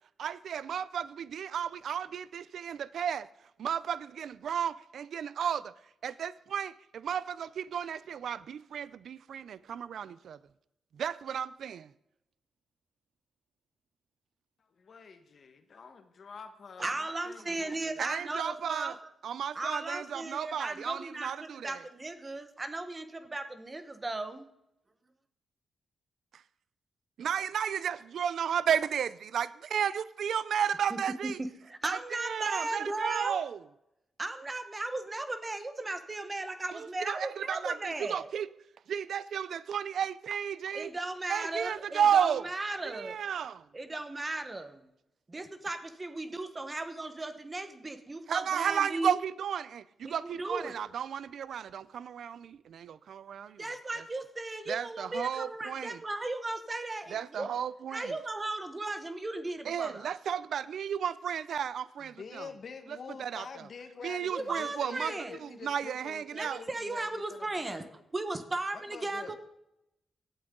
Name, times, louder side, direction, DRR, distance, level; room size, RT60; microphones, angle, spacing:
voice 1, 0.2-3.3 3.6-5.7 6.0-10.4 10.9-11.9 18.0-19.0 19.2-21.8 26.3-26.4 27.2-31.4 31.8-33.6 36.7-38.5 38.9-40.9 41.3-42.5 42.8-43.7 48.3-53.7 54.0-54.1 54.7-56.0 57.1-58.1 59.6-62.5 62.9-63.5 64.0-65.1 65.4-66.6, right 8 dB, 65° right, 0.5 m, -33 dB
voice 2, 14.6-18.0 27.2-27.4 62.0-68.0 68.7-69.4, left 5 dB, 45° left, 1.5 m, -47 dB
voice 3, 16.8-19.0 19.5-24.5 30.9-33.4 34.2-38.3 40.7-43.2 43.7-44.8 45.3-49.2 50.0-50.8 53.6-57.5 57.9-60.1 64.3-65.4 66.4-67.8 68.1-69.4, right 2 dB, 20° right, 1.2 m, -36 dB
17.5 x 12.0 x 3.9 m
wide cardioid pair, 155°, 0 cm